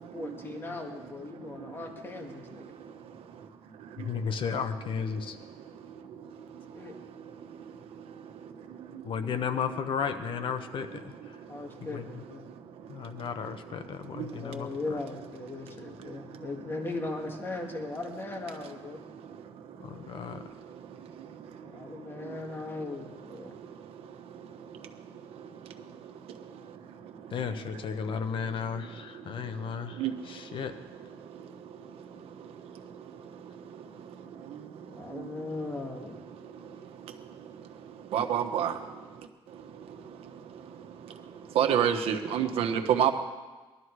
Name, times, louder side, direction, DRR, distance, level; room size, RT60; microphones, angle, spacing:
voice 1, 0.1-2.7 6.7-6.9 11.5-12.4 14.4-19.0 21.6-23.6 34.9-36.2, left 2 dB, 25° left, 2 dB, 2.1 m, -38 dB
voice 2, 4.0-5.4 9.0-11.4 11.9-12.2 12.9-15.0 19.8-20.5 27.3-30.7, left 6 dB, 60° left, 9 dB, 1.1 m, -34 dB
voice 3, 38.1-38.8 41.5-43.2, right 9 dB, 85° right, 6 dB, 1.2 m, -26 dB
19.5 x 12.5 x 4.8 m, 1.2 s
cardioid pair, 125°, 10 cm